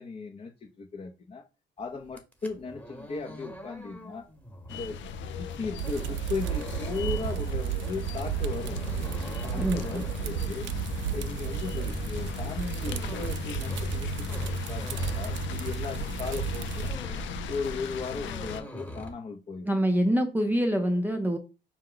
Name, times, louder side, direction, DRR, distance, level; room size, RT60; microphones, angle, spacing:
voice 1, 0.0-1.4 1.8-4.3 4.7-5.0 5.3-8.8 9.4-10.7 11.1-17.0 17.5-19.7, left 4 dB, 35° left, 0.7 m, -37 dB
sound 1, 2.0-16.1 16.5-17.4 17.7-19.1, equal, 5° left, 1.2 m, -45 dB
sound 2, 4.7-18.6, left 5 dB, 70° left, 0.6 m, -36 dB
sound 3, 5.8-16.9, right 12 dB, 70° right, 0.4 m, -34 dB
voice 2, 9.6-10.0 19.6-21.4, equal, 10° right, 0.6 m, -25 dB
5.9 x 2.2 x 3.8 m
cardioid pair, 90°, 20 cm